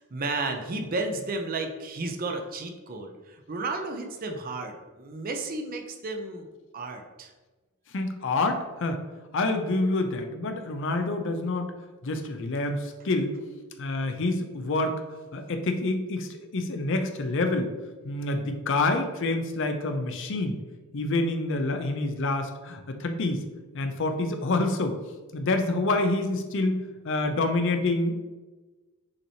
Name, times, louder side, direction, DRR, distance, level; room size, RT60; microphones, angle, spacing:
voice 1, 0.0-6.5 6.7-7.3, right 3 dB, 40° right, 4 dB, 0.5 m, -33 dB
voice 2, 7.9-9.0 9.3-11.7 12.0-13.4 13.8-15.0 15.3-17.7 18.0-20.6 20.9-23.4 23.7-24.9 25.3-28.1, left 2 dB, 60° left, 6 dB, 0.5 m, -27 dB
6.5 x 3.0 x 2.7 m, 1.2 s
head